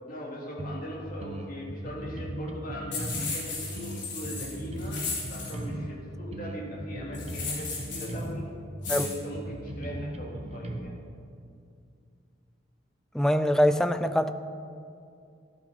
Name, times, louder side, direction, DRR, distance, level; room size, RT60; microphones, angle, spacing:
voice 1, 0.1-8.4 8.9-10.9, equal, 45° left, 2.8 m, -40 dB
sound 1, 0.6-0.9 1.2-3.4 3.8-6.0 6.3-8.5 8.9-10.8, right 1 dB, 35° right, 0.9 m, -37 dB
sound 2, 2.9-5.5 7.1-8.2 8.8-9.2, left 4 dB, 65° left, 3.2 m, -35 dB
voice 2, 13.1-14.3, equal, 5° left, 0.4 m, -23 dB
13.0 x 12.0 x 4.4 m
head